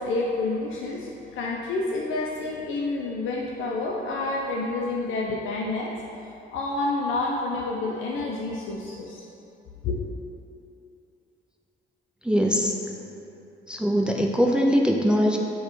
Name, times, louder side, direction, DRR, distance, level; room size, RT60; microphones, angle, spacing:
voice 1, 0.0-5.9 6.5-9.3 9.8-10.0, left 2 dB, 80° left, -2 dB, 0.5 m, -29 dB
voice 2, 12.2-12.7 13.7-15.4, equal, 5° right, -1 dB, 0.3 m, -21 dB
6.5 x 2.3 x 3.1 m, 2.8 s
cardioid pair, 90°, 20 cm